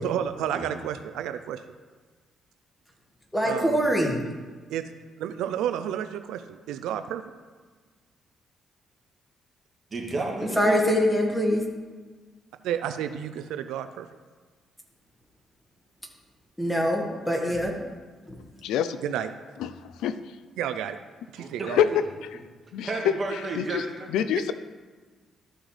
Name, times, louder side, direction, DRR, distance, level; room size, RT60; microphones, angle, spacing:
voice 1, 0.0-1.6 3.4-3.9 4.7-4.8 5.2-7.2 12.6-14.1 19.0-19.3 20.6-21.0 21.3-21.8, right 10 dB, 90° right, 9 dB, 0.4 m, -31 dB
voice 2, 3.3-4.2 10.6-11.6 16.6-17.8, equal, 5° left, 1 dB, 1.7 m, -23 dB
voice 3, 9.9-10.8 21.4-21.7 22.9-24.1, right 3 dB, 35° right, -2 dB, 2.2 m, -32 dB
voice 4, 18.6-19.0 19.6-19.7 20.0-20.2 21.7-21.9 22.2-22.4 22.7-22.9 23.6-23.8 24.1-24.5, left 9 dB, 90° left, 13 dB, 0.4 m, -25 dB
13.5 x 6.2 x 3.3 m, 1.4 s
cardioid pair, 90°, 0 cm